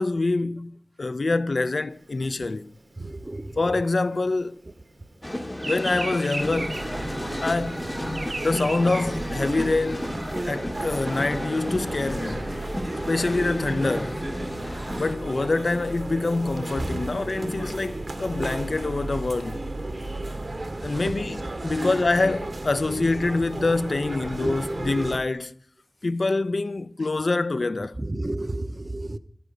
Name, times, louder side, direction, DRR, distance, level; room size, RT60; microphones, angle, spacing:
voice 1, 0.0-2.7 3.6-4.6 5.6-6.8 7.4-7.9 8.4-10.1 10.4-12.5 13.1-14.2 15.0-19.7 20.8-25.5 26.0-28.0, left 3 dB, 65° left, 0.4 m, -25 dB
Bird vocalization bird call bird song, 2.0-4.9 5.2-9.9, right 2 dB, 75° right, 1.4 m, -35 dB
voice 2, 3.0-3.8 19.9-20.1 20.7-21.2 21.6-22.0 24.2-24.6 28.0-29.2, right 1 dB, 35° right, 0.6 m, -33 dB
sound 1, 5.2-15.2, left 1 dB, 15° left, 0.7 m, -33 dB
sound 2, 6.4-25.2, right 2 dB, 55° right, 1.0 m, -33 dB
11.0 x 10.0 x 5.1 m
wide cardioid pair, 70°, 0 cm